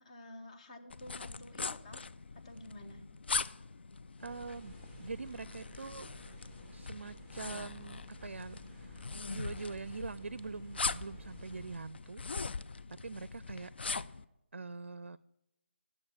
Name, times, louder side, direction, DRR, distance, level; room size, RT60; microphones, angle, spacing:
voice 1, 0.0-2.2 2.4-3.0, left 1 dB, 35° left, 6 dB, 1.2 m, -51 dB
sound 1, 0.9-14.2, left 4 dB, 60° left, 0.4 m, -41 dB
sound 2, 4.2-11.8, equal, 15° left, 1.8 m, -53 dB
voice 2, 4.2-6.1 6.7-12.3 13.0-13.7 14.5-15.2, right 4 dB, 75° right, 18 dB, 0.4 m, -44 dB
11.0 x 7.2 x 6.5 m, 0.88 s
figure-of-eight pair, 165°, 7 cm